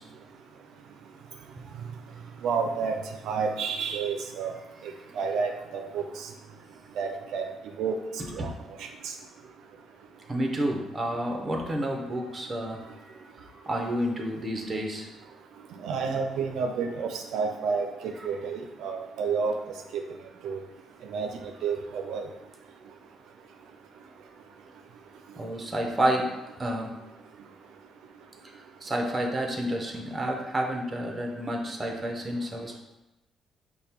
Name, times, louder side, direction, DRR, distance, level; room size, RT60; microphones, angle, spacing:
voice 1, 2.4-2.9 3.3-4.5 5.2-6.0 7.0-7.4 7.8-7.9 8.4-8.5 15.8-19.5 20.4-20.6 21.1-21.3 21.6-22.3, right 5 dB, 80° right, 4 dB, 0.4 m, -29 dB
voice 2, 10.3-12.8 13.6-15.1 25.4-26.3 26.6-26.9 28.4-28.5 28.8-32.8, right 1 dB, 20° right, 2 dB, 0.7 m, -29 dB
5.1 x 2.2 x 4.3 m, 0.99 s
cardioid pair, 110°, 0 cm